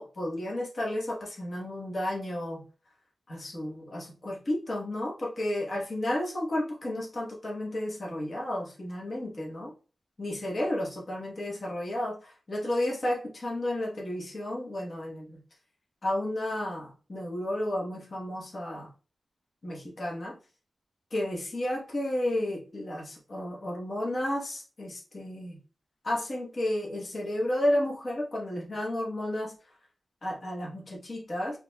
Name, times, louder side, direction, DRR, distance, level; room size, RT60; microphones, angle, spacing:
voice 1, 0.0-2.6 3.3-9.7 10.2-15.4 16.0-18.9 19.6-20.4 21.1-25.6 26.0-29.5 30.2-31.6, left 1 dB, 40° left, -3 dB, 1.1 m, -32 dB
4.8 x 2.9 x 2.3 m, 0.36 s
wide cardioid pair, 165°, 0 cm